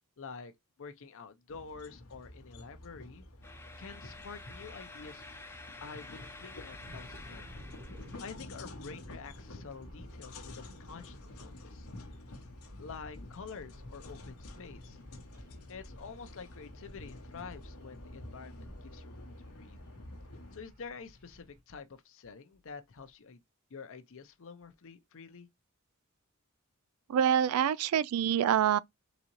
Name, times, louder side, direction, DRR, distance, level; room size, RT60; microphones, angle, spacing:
voice 1, 0.2-0.5 0.8-5.2 5.8-7.5 8.2-11.9 12.8-15.0 15.7-19.8 20.5-23.4 23.7-25.5, left 5 dB, 65° left, 0.6 m, -48 dB
sound 1, 1.5-20.6, left 1 dB, 85° left, 0.9 m, -50 dB
sound 2, 3.4-8.4, left 3 dB, 10° left, 0.6 m, -50 dB
sound 3, 6.8-21.6, equal, 40° right, 1.5 m, -54 dB
voice 2, 27.1-28.8, right 9 dB, 75° right, 0.3 m, -26 dB
4.0 x 3.7 x 2.9 m
head